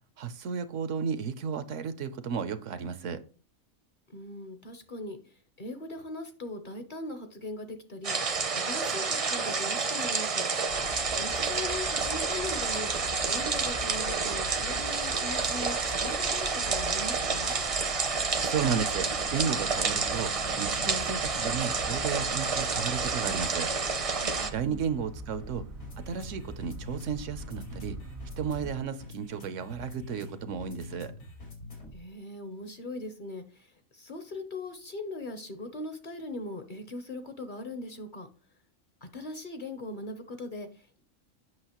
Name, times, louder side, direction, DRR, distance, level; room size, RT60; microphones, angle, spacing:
voice 1, 0.2-3.2 18.4-23.7 24.5-25.6 26.1-28.0 28.4-31.1, right 6 dB, 70° right, 1.0 m, -33 dB
voice 2, 4.1-10.4 11.2-12.9 13.3-17.6 24.2-24.9 31.9-38.3 39.0-41.0, left 2 dB, 45° left, 0.8 m, -40 dB
sound 1, 8.0-24.5, right 4 dB, 35° right, 0.6 m, -29 dB
sound 2, 10.7-28.8, left 1 dB, 90° right, 1.9 m, -43 dB
sound 3, 19.1-32.1, left 1 dB, 85° left, 3.0 m, -47 dB
7.9 x 6.0 x 2.9 m
omnidirectional pair, 1.4 m